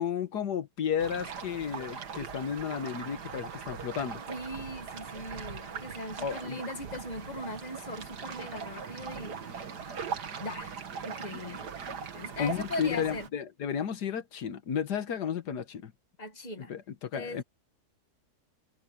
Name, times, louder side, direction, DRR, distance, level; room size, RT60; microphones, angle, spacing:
voice 1, 0.0-4.2 6.2-6.6 12.4-15.9 16.6-17.4, left 8 dB, 85° left, 1.8 m, -33 dB
sound 1, 1.0-13.3, right 6 dB, 85° right, 2.2 m, -40 dB
voice 2, 4.3-9.4 10.4-10.8 11.0-11.6 12.1-13.3 16.2-16.7 17.1-17.4, left 1 dB, 25° left, 2.0 m, -39 dB
omnidirectional pair, 1.7 m